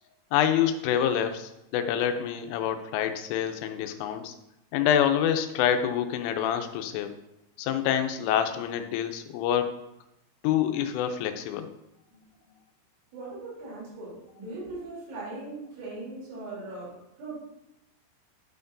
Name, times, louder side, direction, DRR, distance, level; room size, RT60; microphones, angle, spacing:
voice 1, 0.3-4.3 4.7-7.1 7.6-9.7 10.4-11.7, left 9 dB, 90° left, 7 dB, 3.2 m, -26 dB
voice 2, 13.1-16.9 17.2-17.4, right 2 dB, 80° right, -7 dB, 5.9 m, -39 dB
12.0 x 5.7 x 2.7 m, 0.87 s
omnidirectional pair, 5.5 m